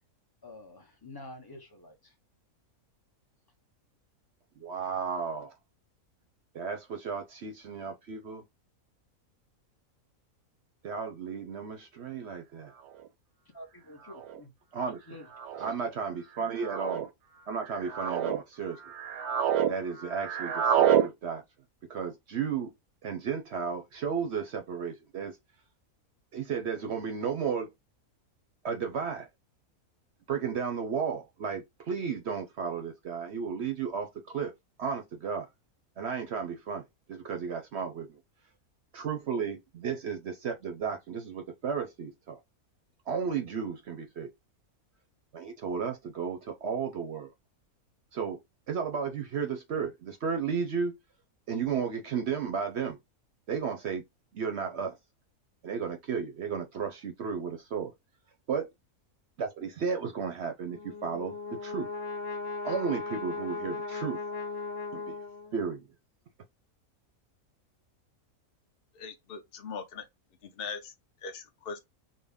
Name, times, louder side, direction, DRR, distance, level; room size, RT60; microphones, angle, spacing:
voice 1, 0.4-2.1 13.5-14.5 15.1-15.7, left 1 dB, 20° left, 0.7 m, -48 dB
voice 2, 4.6-5.5 6.5-8.4 10.8-12.7 14.7-15.0 15.6-17.1 17.5-18.8 19.7-21.4 21.9-22.7 23.0-25.4 26.3-27.7 28.6-29.3 30.3-34.5 34.8-35.5 36.0-36.8 37.1-38.2 38.9-42.4 43.1-44.3 45.3-47.3 48.1-48.4 48.7-50.9 51.5-53.0 53.5-54.0 54.3-54.9 55.6-57.9 58.5-58.7 59.4-61.3 61.6-61.9 62.6-64.2 64.9-65.2 65.5-65.9, right 6 dB, 60° right, 0.8 m, -33 dB
sound 1, 13.0-13.1 14.1-14.4 15.3-15.7 16.6-17.0 17.7-18.4 18.8-19.7 20.0-21.1, right 9 dB, 90° right, 1.2 m, -27 dB
Brass instrument, 60.7-65.7, left 3 dB, 65° left, 1.1 m, -37 dB
voice 3, 68.9-70.0 70.4-70.9 71.2-71.8, left 5 dB, 45° left, 0.9 m, -40 dB
3.8 x 2.2 x 3.5 m
omnidirectional pair, 1.5 m